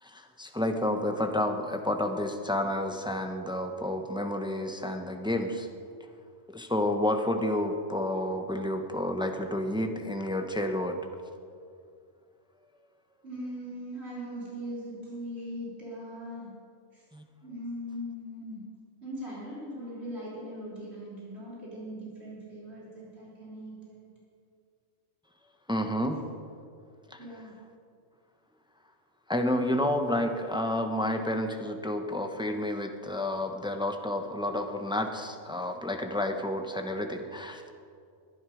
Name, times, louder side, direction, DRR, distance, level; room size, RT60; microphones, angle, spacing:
voice 1, 0.0-5.7 6.5-11.0 17.1-17.2 25.7-26.2 27.1-27.2 29.3-37.7, left 1 dB, 5° right, 5 dB, 0.8 m, -30 dB
voice 2, 13.2-16.5 16.9-17.0 17.4-18.6 19.0-24.1 27.2-27.5, equal, 60° right, -7 dB, 3.9 m, -40 dB
20.0 x 11.0 x 5.1 m, 2.4 s
omnidirectional pair, 1.3 m